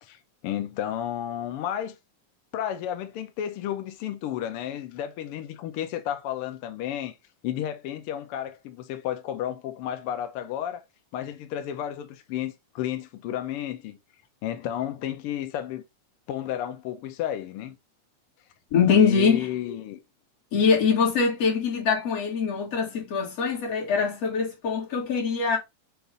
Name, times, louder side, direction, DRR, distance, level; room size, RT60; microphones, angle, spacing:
voice 1, 0.0-2.0 2.5-7.1 7.4-10.8 11.1-14.0 14.4-15.8 16.3-17.8 18.9-20.0, left 11 dB, 75° left, 1.3 m, -32 dB
voice 2, 18.7-19.5 20.5-25.6, left 5 dB, 55° left, 3.0 m, -23 dB
6.9 x 2.6 x 5.1 m
omnidirectional pair, 3.4 m